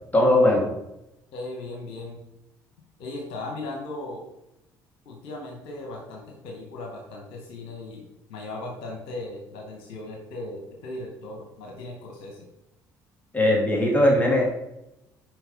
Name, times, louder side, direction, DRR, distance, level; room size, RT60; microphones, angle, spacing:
voice 1, 0.1-0.7 13.3-14.4, left 1 dB, 15° left, -1 dB, 3.6 m, -19 dB
voice 2, 1.3-2.2 3.0-4.3 5.1-12.5, left 2 dB, 65° left, 0 dB, 2.0 m, -37 dB
10.0 x 5.5 x 5.4 m, 0.88 s
figure-of-eight pair, 55°, 10 cm